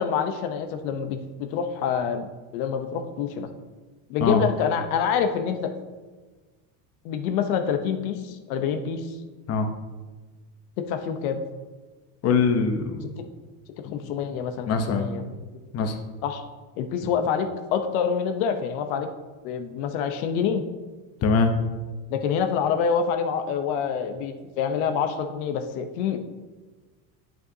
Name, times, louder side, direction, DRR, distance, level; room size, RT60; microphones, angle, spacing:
voice 1, 0.0-2.3 2.5-3.5 4.1-5.7 7.0-9.2 10.8-11.4 13.2-13.3 13.8-15.2 16.2-16.4 16.8-19.1 19.4-20.6 22.1-26.2, left 7 dB, 85° left, 7 dB, 0.9 m, -26 dB
voice 2, 12.2-13.1 13.8-14.0 14.7-15.1 15.7-16.0 21.2-21.5, left 4 dB, 35° left, 5 dB, 0.9 m, -22 dB
8.8 x 8.1 x 2.8 m, 1.3 s
cardioid pair, 130°, 43 cm